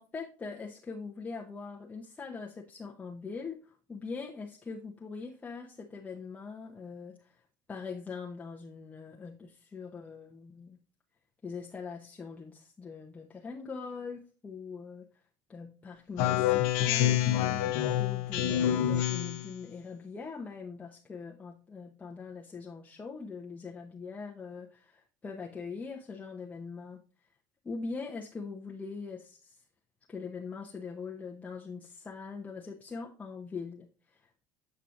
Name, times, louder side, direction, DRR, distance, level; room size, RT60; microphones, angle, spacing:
voice 1, 0.0-7.4 7.7-10.8 11.4-15.1 15.5-27.0 27.6-29.6 30.1-34.5, left 4 dB, 20° left, -1 dB, 0.8 m, -42 dB
Speech synthesizer, 16.2-19.5, left 12 dB, 80° left, 0.8 m, -27 dB
8.2 x 5.5 x 2.5 m, 0.37 s
supercardioid pair, 115°, 8 cm